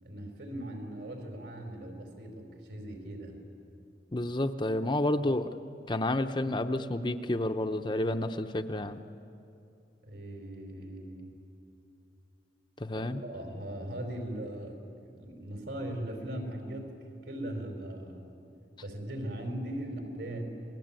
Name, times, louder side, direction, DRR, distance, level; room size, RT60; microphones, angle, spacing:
voice 1, 0.0-3.4 10.0-11.3 12.9-16.9 17.2-18.3 18.8-20.4, right 1 dB, 70° right, 3 dB, 5.1 m, -39 dB
voice 2, 4.1-5.5 5.9-9.0 12.8-13.2, left 1 dB, 25° left, 7 dB, 0.8 m, -30 dB
29.5 x 21.0 x 9.1 m, 2.6 s
head